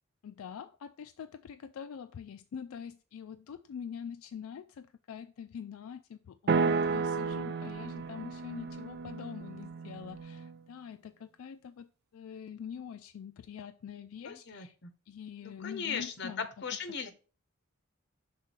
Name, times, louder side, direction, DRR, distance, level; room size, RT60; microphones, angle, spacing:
voice 1, 0.2-14.8 15.1-16.5, left 7 dB, 80° left, 0.3 m, -44 dB
sound 1, 6.5-10.6, right 4 dB, 50° right, 0.3 m, -32 dB
voice 2, 14.2-14.9 15.4-17.1, left 6 dB, 55° left, 0.9 m, -38 dB
5.9 x 3.7 x 4.5 m
head